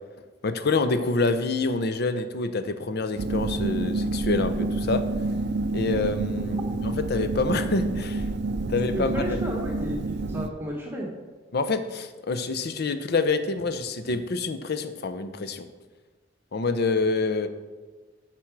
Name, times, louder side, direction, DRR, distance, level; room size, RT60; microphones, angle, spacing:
voice 1, 0.4-5.0 5.7-8.2 8.7-9.4 11.5-15.7 16.5-17.5, left 3 dB, 55° left, 10 dB, 0.6 m, -27 dB
sound 1, 3.2-10.5, right 2 dB, 60° right, 0.4 m, -28 dB
voice 2, 8.9-11.1, equal, 10° right, -2 dB, 1.1 m, -32 dB
8.6 x 6.0 x 4.6 m, 1.3 s
head